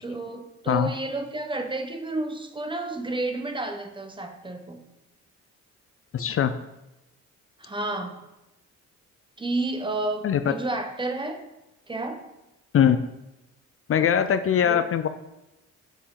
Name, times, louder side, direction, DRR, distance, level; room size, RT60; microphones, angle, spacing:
voice 1, 0.0-4.8 7.6-8.2 9.4-11.4 11.9-12.2 14.6-14.8, right 2 dB, 15° right, 6 dB, 1.1 m, -31 dB
voice 2, 6.1-6.5 10.2-10.4 12.7-13.0 13.9-15.1, left 8 dB, 50° left, 10 dB, 0.5 m, -21 dB
8.5 x 7.2 x 3.9 m, 0.97 s
cardioid pair, 90°, 30 cm